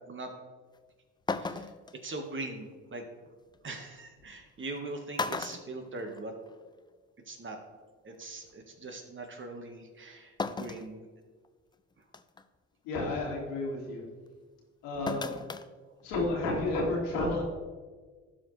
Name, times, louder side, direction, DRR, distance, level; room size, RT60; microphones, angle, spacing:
sound 1, 0.7-0.8 1.3-1.9 3.5-3.6 4.6-4.8 5.1-6.5 6.9-7.0 8.2-8.3 10.4-10.9 11.4-11.5 12.1-12.4 15.1-15.7 16.0-16.1, left 4 dB, 15° left, 0.4 m, -35 dB
voice 1, 1.4-1.7 2.0-3.0 3.6-6.3 7.3-7.6 8.0-11.1, right 2 dB, 35° right, 3 dB, 1.6 m, -41 dB
voice 2, 12.8-14.0 14.8-15.4 16.0-17.4, left 2 dB, 85° left, -2 dB, 2.2 m, -31 dB
12.5 x 5.0 x 3.3 m, 1.4 s
supercardioid pair, 70°, 33 cm